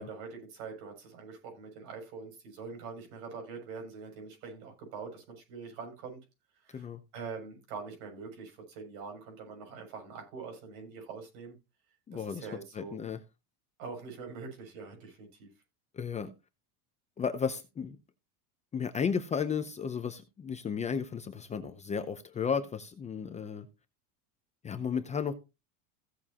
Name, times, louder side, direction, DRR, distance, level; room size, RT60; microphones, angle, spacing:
voice 1, 0.0-6.2 6.6-6.9 7.1-11.6 12.1-13.0 13.8-15.5, right 5 dB, 70° right, 6.9 m, -44 dB
voice 2, 12.1-12.5 12.7-13.2 15.9-16.3 17.2-18.0 18.7-23.7 24.6-25.3, left 6 dB, 15° left, 0.6 m, -34 dB
16.0 x 7.2 x 2.9 m
supercardioid pair, 150°, 43 cm